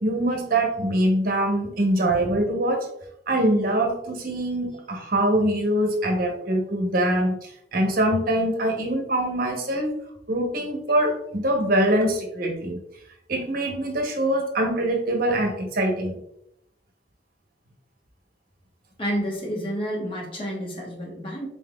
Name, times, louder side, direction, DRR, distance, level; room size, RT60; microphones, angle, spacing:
voice 1, 0.0-2.9 3.3-9.9 10.3-12.8 13.3-16.1, right 1 dB, 50° right, 2 dB, 0.8 m, -23 dB
voice 2, 19.0-21.5, equal, 30° left, -2 dB, 1.0 m, -29 dB
4.2 x 3.9 x 2.3 m, 0.77 s
head